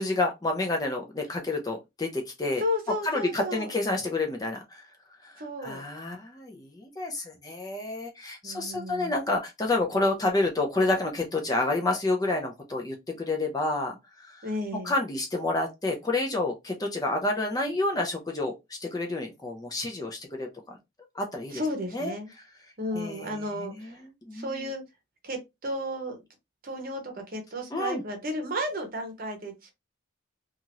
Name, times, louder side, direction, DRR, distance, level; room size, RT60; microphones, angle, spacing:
voice 1, 0.0-2.6 3.0-4.8 5.2-14.5 14.8-20.8 21.1-21.6 21.9-22.1 22.9-24.7 27.7-28.0, left 2 dB, 20° left, 0.5 m, -29 dB
voice 2, 2.6-3.7 5.4-5.8 8.4-9.1 14.4-14.9 21.5-22.3 22.8-24.0 24.3-24.8 25.2-26.2 26.6-29.7, equal, 45° right, 0.9 m, -33 dB
2.8 x 2.4 x 2.9 m
head